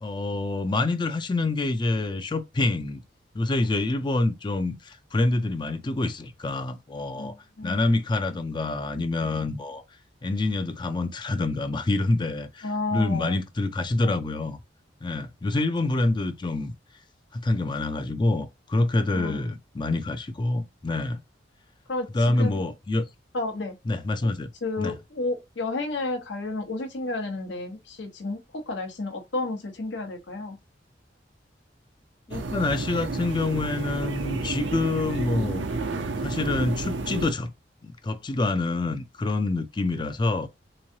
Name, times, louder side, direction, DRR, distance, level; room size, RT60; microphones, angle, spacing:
voice 1, 0.0-3.0 3.3-7.3 7.6-9.8 10.2-14.6 15.0-16.7 17.3-21.2 22.1-23.1 23.9-24.5 24.8-24.9 32.3-35.6 36.2-37.5 37.8-40.5, left 2 dB, 25° left, 0.4 m, -26 dB
voice 2, 7.1-7.8 12.6-13.4 19.1-19.4 21.9-22.7 23.3-23.7 24.6-30.6, left 2 dB, 75° left, 0.9 m, -31 dB
sound 1, 32.3-37.3, right 3 dB, 80° right, 0.5 m, -31 dB
3.6 x 3.1 x 2.7 m
head